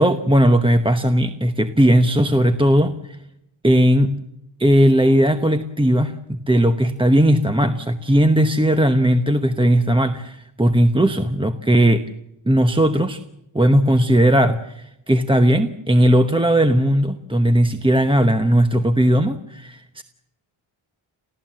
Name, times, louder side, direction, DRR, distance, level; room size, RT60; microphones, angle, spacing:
voice 1, 0.0-3.2 3.6-4.1 4.6-12.0 12.5-13.2 13.5-20.0, equal, 10° right, 8 dB, 0.9 m, -17 dB
28.5 x 15.5 x 7.5 m, 0.86 s
wide cardioid pair, 120°, 49 cm